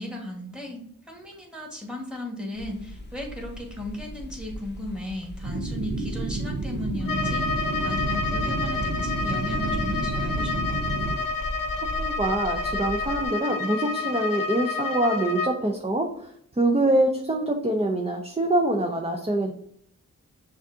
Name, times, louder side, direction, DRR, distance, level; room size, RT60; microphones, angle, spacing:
voice 1, 0.0-10.8, left 1 dB, ahead, 0 dB, 1.5 m, -36 dB
sound 1, 2.6-13.3, left 1 dB, 30° left, 0.7 m, -38 dB
sound 2, 5.4-11.2, right 2 dB, 75° right, 0.7 m, -30 dB
Bowed string instrument, 7.0-15.6, left 4 dB, 70° left, 0.8 m, -29 dB
voice 2, 12.0-16.1 16.6-19.5, right 1 dB, 20° right, 3 dB, 0.6 m, -24 dB
6.3 x 2.5 x 2.7 m, 0.68 s
cardioid pair, 45°, 35 cm